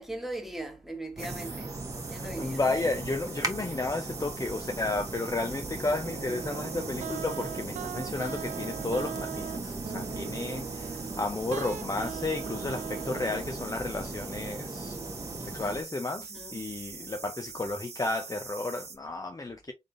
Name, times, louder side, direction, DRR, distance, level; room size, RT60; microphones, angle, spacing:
voice 1, 0.0-1.7 2.1-2.6 16.3-16.7 17.0-17.1, right 1 dB, ahead, 1.5 m, -39 dB
sound 1, 1.2-15.8, right 2 dB, 30° right, 1.1 m, -38 dB
sound 2, 1.2-19.0, right 4 dB, 55° right, 1.0 m, -44 dB
voice 2, 2.1-15.0 15.4-19.7, left 2 dB, 30° left, 0.6 m, -33 dB
sound 3, 6.1-13.7, right 9 dB, 90° right, 0.4 m, -40 dB
3.6 x 3.5 x 2.5 m
cardioid pair, 45°, 13 cm